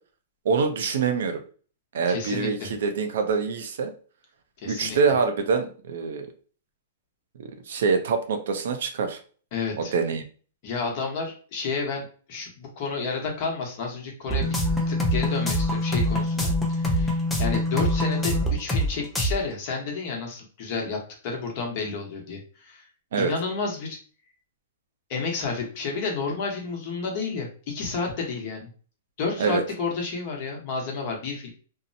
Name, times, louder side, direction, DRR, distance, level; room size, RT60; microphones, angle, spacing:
voice 1, 0.4-1.4 1.9-3.9 4.7-6.3 7.4-9.2 9.8-10.2 23.1-23.3 29.4-29.6, right 5 dB, 70° right, 6 dB, 0.5 m, -25 dB
voice 2, 2.1-2.7 4.6-5.0 9.5-9.9 10.6-14.6 14.9-22.9 23.2-24.0 25.1-28.7 29.2-31.5, left 4 dB, 45° left, 0 dB, 0.9 m, -31 dB
sound 1, 14.3-18.9 19.2-19.3, left 1 dB, 10° left, 0.5 m, -24 dB
2.7 x 2.0 x 2.7 m, 0.40 s
hypercardioid pair, 150°, 0 cm